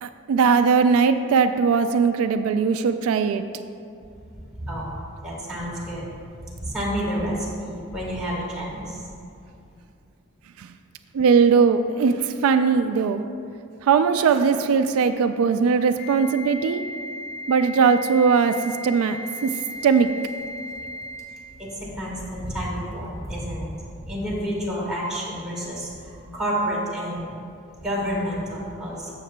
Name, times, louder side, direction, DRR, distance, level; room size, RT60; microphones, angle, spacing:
voice 1, 0.0-3.4 10.6-10.7 11.1-13.2 13.8-16.8 17.5-19.5 19.8-20.1, right 5 dB, 80° right, 9 dB, 0.3 m, -20 dB
voice 2, 4.6-4.9 5.2-6.1 6.6-9.0 21.6-27.3 27.8-29.1, equal, 5° right, -7 dB, 1.7 m, -29 dB
Wind instrument woodwind instrument, 16.0-21.3, left 1 dB, 75° left, 1.7 m, -36 dB
14.0 x 6.5 x 2.2 m, 2.5 s
head